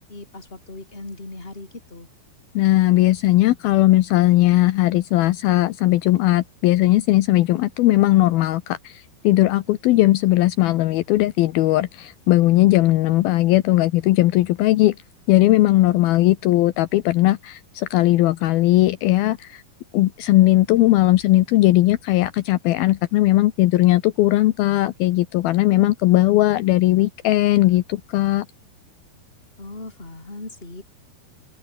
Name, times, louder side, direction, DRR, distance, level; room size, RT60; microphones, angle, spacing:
voice 1, 0.1-2.1 9.7-10.1 29.6-30.8, left 2 dB, 15° left, 4.1 m, -39 dB
voice 2, 2.6-15.0 15.3-19.6 19.9-28.5, left 16 dB, 75° left, 2.6 m, -18 dB
open air
omnidirectional pair, 4.6 m